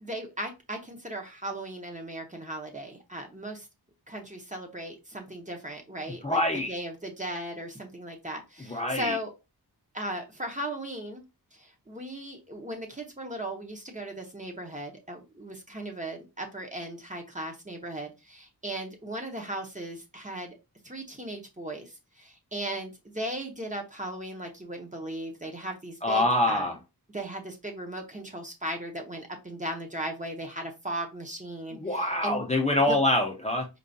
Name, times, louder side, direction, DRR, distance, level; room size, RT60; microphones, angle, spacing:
voice 1, 0.0-3.7 4.1-6.4 6.7-9.3 9.9-11.2 11.5-20.6 20.8-26.8 27.1-32.4 32.8-33.0, right 1 dB, 20° right, 0.8 m, -37 dB
voice 2, 6.2-6.7 8.7-9.2 26.0-26.8 31.7-33.7, left 1 dB, 15° left, 0.6 m, -25 dB
4.6 x 2.4 x 2.6 m
wide cardioid pair, 90°, 39 cm